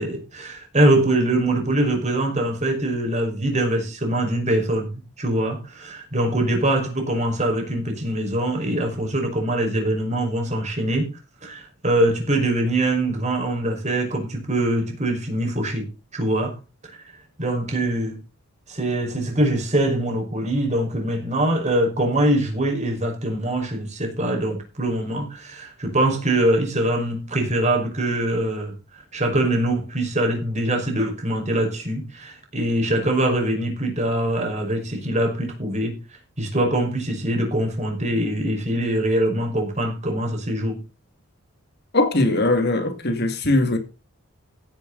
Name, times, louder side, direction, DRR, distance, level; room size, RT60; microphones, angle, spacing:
voice 1, 0.0-11.1 11.4-15.9 16.1-16.5 17.4-18.2 18.7-28.7 29.1-36.0 36.4-40.8, right 1 dB, 30° right, 5.5 m, -23 dB
voice 2, 41.9-43.8, left 2 dB, 50° left, 2.3 m, -20 dB
16.0 x 10.5 x 4.1 m
head